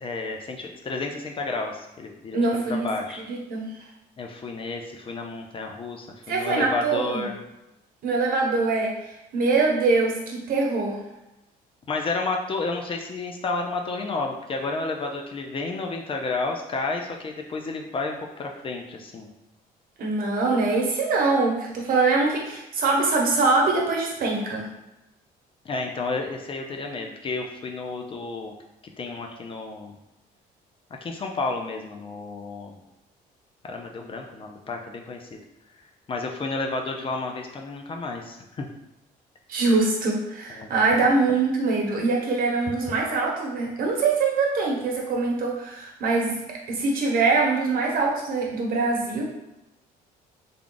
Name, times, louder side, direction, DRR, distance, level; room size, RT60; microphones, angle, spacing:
voice 1, 0.0-2.4 2.7-3.2 4.2-7.4 11.9-19.3 25.7-28.5 29.0-29.9 31.0-32.8 33.6-35.4 36.1-38.7 40.6-40.7, left 3 dB, 30° left, 2 dB, 0.5 m, -31 dB
voice 2, 2.3-2.9 3.2-3.7 6.3-7.3 8.0-11.0 20.0-24.7 39.5-46.4 46.7-49.3, right 3 dB, 55° right, -1 dB, 1.0 m, -23 dB
3.5 x 2.3 x 3.8 m, 0.94 s
cardioid pair, 110°, 17 cm